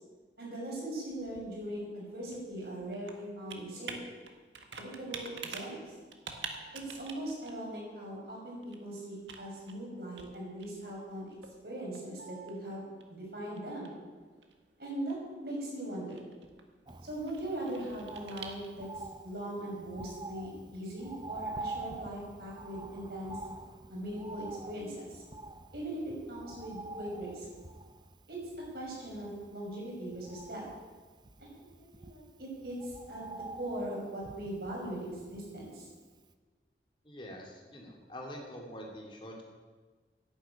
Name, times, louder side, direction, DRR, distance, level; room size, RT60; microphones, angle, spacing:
voice 1, 0.4-4.0 4.8-5.8 6.7-11.3 11.6-12.8 13.1-14.0 14.8-15.2 15.4-16.2 17.0-18.9 19.2-23.4 23.9-25.2 25.7-27.4 28.3-28.4 28.7-30.6 31.4-35.9, right 1 dB, 60° right, -3 dB, 6.2 m, -40 dB
Computer keyboard, 0.7-19.0, right 5 dB, 90° right, 1.7 m, -49 dB
Bird, 16.9-36.0 36.3-36.4, right 2 dB, 25° right, 0.6 m, -47 dB
voice 2, 37.0-39.4, equal, 30° left, 0 dB, 2.8 m, -45 dB
11.0 x 11.0 x 8.9 m, 1.4 s
head